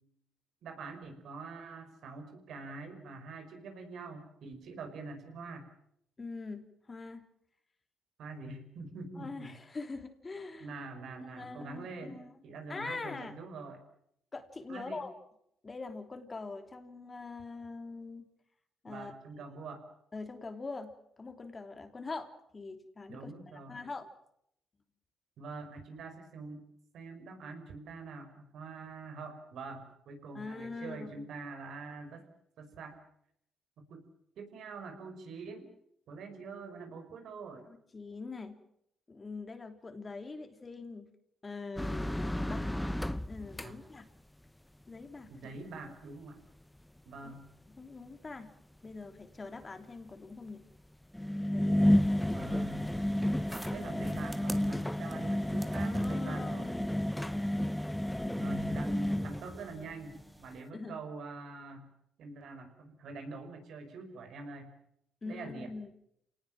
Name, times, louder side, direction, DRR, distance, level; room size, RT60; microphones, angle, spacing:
voice 1, 0.6-5.7 8.2-9.6 10.6-13.8 14.7-15.1 18.9-19.8 23.1-23.8 25.4-26.6 26.9-32.3 32.6-33.0 33.8-34.1 34.4-35.7 36.1-37.6 43.6-43.8 45.3-46.4 47.1-47.4 52.2-56.7 58.2-61.9 62.2-64.7 65.2-65.7, right 3 dB, 70° right, 6 dB, 5.5 m, -45 dB
voice 2, 6.2-7.3 9.2-10.7 11.2-12.3 12.7-13.3 14.3-15.1 15.6-18.2 18.8-19.1 19.5-19.6 20.1-20.9 21.2-23.3 23.7-24.1 30.3-31.2 37.7-38.6 39.1-41.1 41.4-42.7 43.2-44.1 44.9-45.5 47.2-47.3 47.7-48.5 48.8-50.6 51.5-52.0 55.8-56.9 60.7-61.0 65.2-65.9, left 3 dB, 30° left, 7 dB, 3.1 m, -43 dB
sound 1, 41.8-43.9 47.7-47.8 49.6-49.7 51.1-59.9 60.2-60.4, left 1 dB, 5° left, 0.9 m, -31 dB
sound 2, 51.9-60.7, right 2 dB, 15° right, 1.9 m, -53 dB
28.0 x 19.0 x 7.6 m, 0.74 s
cardioid pair, 90°, 0 cm